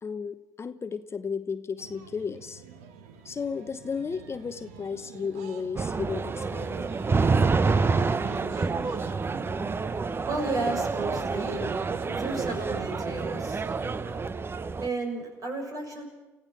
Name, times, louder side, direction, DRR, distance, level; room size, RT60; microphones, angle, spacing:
voice 1, 0.0-2.6 3.2-6.7, left 5 dB, 30° left, 11 dB, 0.9 m, -34 dB
sound 1, 1.8-14.5, right 7 dB, 80° right, 1.5 m, -47 dB
sound 2, 5.8-14.9, right 4 dB, 30° right, 0.8 m, -28 dB
voice 2, 9.6-11.7 12.2-13.6 14.8-16.0, right 2 dB, 45° right, 3 dB, 6.7 m, -33 dB
29.5 x 15.5 x 6.1 m, 1.2 s
hypercardioid pair, 60°, 8 cm